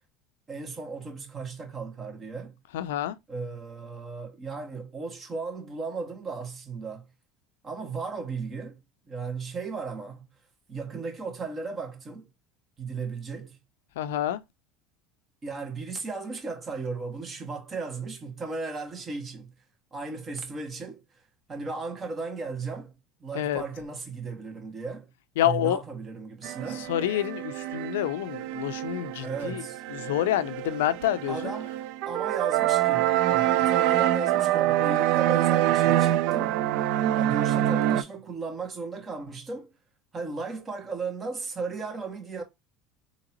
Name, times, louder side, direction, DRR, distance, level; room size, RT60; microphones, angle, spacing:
voice 1, 0.5-2.6 3.3-7.1 7.6-8.8 9.1-10.3 10.7-12.3 12.8-13.6 15.4-19.5 19.9-21.0 21.5-25.1 25.4-26.9 29.2-29.8 31.3-31.7 32.1-36.6 37.1-39.7 40.1-42.4, right 4 dB, 30° right, 1.5 m, -36 dB
voice 2, 2.7-3.2 14.0-14.4 23.3-23.6 25.4-25.8 26.8-29.6 29.9-31.5, left 12 dB, 90° left, 0.4 m, -28 dB
sound 1, 26.4-38.0, right 13 dB, 70° right, 0.3 m, -25 dB
3.9 x 2.9 x 2.8 m
supercardioid pair, 105°, 0 cm